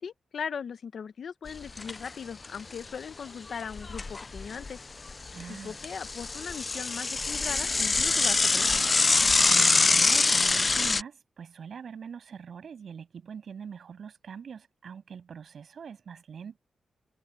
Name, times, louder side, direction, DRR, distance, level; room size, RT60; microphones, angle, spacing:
voice 1, 0.0-4.8 5.5-8.8, left 7 dB, 65° left, 1.0 m, -39 dB
Bicycle / Mechanisms, 1.5-2.1 2.4-2.5 2.8-2.9 3.5-4.7 5.1-11.0, left 3 dB, 30° left, 0.4 m, -24 dB
voice 2, 5.3-5.8 9.4-16.6, right 7 dB, 65° right, 7.3 m, -43 dB
wide cardioid pair, 110°, 0 cm